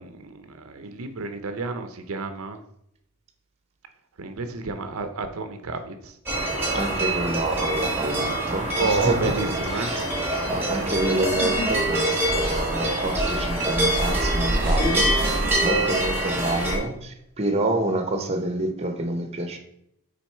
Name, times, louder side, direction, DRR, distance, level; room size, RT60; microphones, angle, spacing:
voice 1, 0.0-2.6 4.2-6.2 8.7-9.9 14.5-14.7, right 3 dB, 65° right, 8 dB, 0.6 m, -30 dB
sound 1, 6.3-16.8, right 1 dB, 10° right, 1.4 m, -25 dB
voice 2, 6.7-9.3 9.7-10.1 10.5-19.6, right 1 dB, 30° right, 6 dB, 0.8 m, -28 dB
sound 2, 11.4-11.7 12.1-12.7 13.7-13.8 14.6-16.0 16.3-16.7, equal, 60° left, 2.4 m, -28 dB
6.1 x 4.1 x 4.4 m, 0.77 s
head